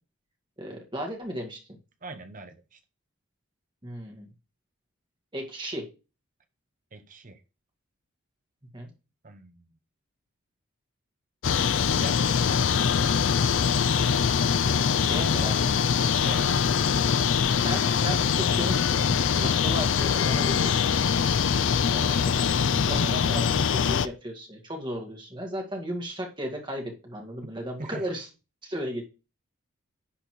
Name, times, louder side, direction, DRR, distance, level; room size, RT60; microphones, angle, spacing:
voice 1, 0.6-1.6 3.8-4.3 5.3-5.8 8.7-8.9 15.0-15.8 17.6-20.9 21.9-23.5 23.8-28.3 28.6-29.0, equal, 20° right, 2.0 m, -35 dB
voice 2, 2.0-2.8 6.9-7.4 9.2-9.7 11.9-12.4 16.2-16.9 22.7-23.6 27.4-27.5 27.8-28.1, right 2 dB, 35° right, 0.8 m, -40 dB
sound 1, 11.4-24.1, left 6 dB, 60° left, 0.4 m, -23 dB
10.5 x 4.3 x 4.6 m
head